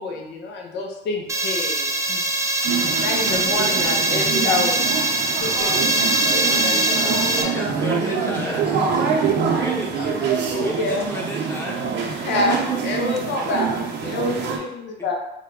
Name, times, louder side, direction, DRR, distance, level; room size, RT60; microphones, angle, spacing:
voice 1, 0.0-2.2 3.0-4.9 5.4-5.8 6.3-7.5 10.5-11.1 12.2-13.7 14.0-15.2, left 3 dB, 70° left, 1 dB, 0.7 m, -27 dB
sound 1, 1.3-7.4, right 2 dB, 15° right, 0.6 m, -22 dB
sound 2, 2.6-14.6, right 6 dB, 75° right, 0.6 m, -25 dB
voice 2, 6.5-10.3, left 1 dB, 35° left, -9 dB, 1.3 m, -36 dB
voice 3, 7.5-8.6 9.6-9.9 10.6-11.8 14.0-14.4 15.0-15.2, equal, 15° left, -2 dB, 0.9 m, -32 dB
3.5 x 2.2 x 3.7 m, 0.87 s
cardioid pair, 85°, 19 cm